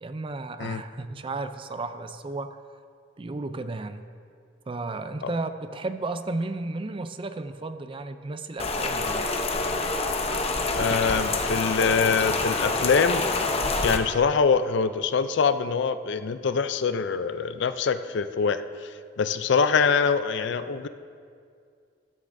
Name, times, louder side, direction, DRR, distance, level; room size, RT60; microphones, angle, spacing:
voice 1, 0.0-2.6 3.2-4.0 4.7-9.2, right 2 dB, 30° right, 10 dB, 0.4 m, -33 dB
Rain, 8.6-14.0, left 3 dB, 35° left, 0.7 m, -26 dB
voice 2, 10.7-13.3 13.8-18.6 19.2-20.9, left 5 dB, 65° left, 12 dB, 0.4 m, -24 dB
13.0 x 13.0 x 2.6 m, 2.3 s
head